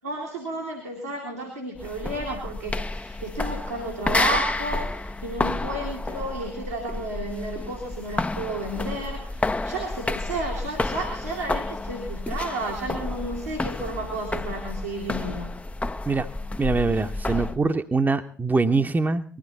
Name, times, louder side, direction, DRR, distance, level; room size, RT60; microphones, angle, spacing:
voice 1, 0.0-15.5, right 2 dB, 90° right, -4 dB, 2.4 m, -32 dB
sound 1, 1.8-17.6, left 2 dB, 15° left, 0.7 m, -30 dB
voice 2, 16.6-19.2, right 3 dB, 25° right, 7 dB, 1.0 m, -23 dB
20.0 x 14.5 x 4.1 m, 0.43 s
figure-of-eight pair, 45°, 8 cm